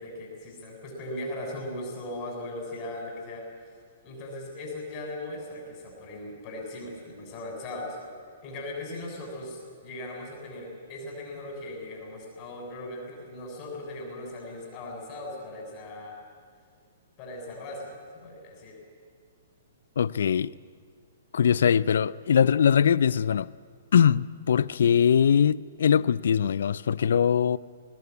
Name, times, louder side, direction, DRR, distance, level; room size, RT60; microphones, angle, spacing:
voice 1, 0.0-3.4 4.0-8.0 8.4-16.1 17.2-17.9 18.2-18.8, left 1 dB, 40° left, 7.1 m, -38 dB
voice 2, 20.0-20.5 21.3-23.5 23.9-27.6, left 8 dB, 65° left, 0.5 m, -22 dB
20.5 x 19.0 x 9.6 m
figure-of-eight pair, 120°, 0 cm